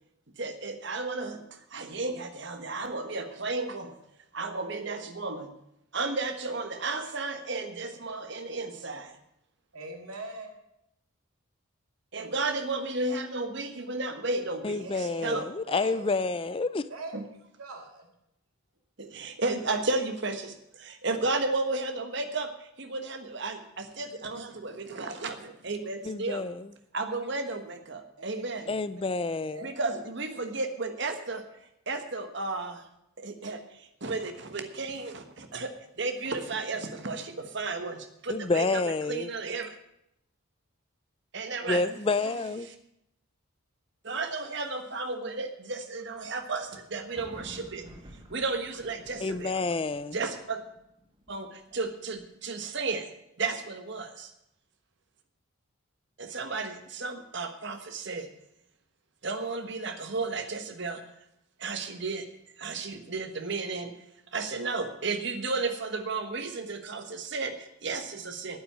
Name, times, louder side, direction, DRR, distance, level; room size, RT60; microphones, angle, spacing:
voice 1, 0.4-4.0 4.3-5.5 5.9-9.2 12.1-15.5 17.1-17.2 19.0-26.4 26.9-28.7 29.6-31.4 31.9-32.8 33.2-35.7 36.0-39.7 41.3-41.8 44.0-47.8 48.3-49.6 50.1-50.6 51.3-53.0 53.4-54.3 56.2-58.3 59.2-61.0 61.6-62.3 62.6-63.9 64.3-68.6, right 3 dB, 55° right, 7 dB, 1.3 m, -33 dB
voice 2, 9.7-10.6 14.8-15.4 15.6-16.1 16.9-17.1 17.6-18.1 28.2-29.0 29.5-30.0 41.6-42.4, right 2 dB, 90° right, 2 dB, 2.2 m, -43 dB
voice 3, 14.6-16.8 26.1-26.7 28.7-29.7 38.3-39.3 41.7-42.7 49.2-50.2, left 3 dB, 25° left, 15 dB, 0.4 m, -29 dB
sound 1, 46.1-52.3, equal, 20° right, 1.5 m, -51 dB
9.5 x 8.7 x 8.6 m, 0.81 s
head